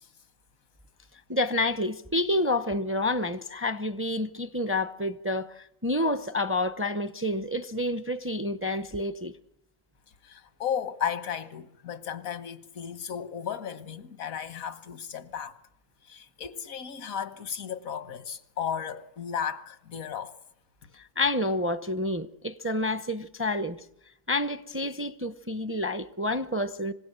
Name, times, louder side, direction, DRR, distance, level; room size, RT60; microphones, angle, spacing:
voice 1, 1.3-9.3 21.2-23.8 24.3-26.9, left 1 dB, 15° right, 0.5 m, -29 dB
voice 2, 10.2-15.6 16.1-20.3, left 8 dB, 90° left, 1.7 m, -34 dB
26.5 x 17.0 x 7.8 m
omnidirectional pair, 1.4 m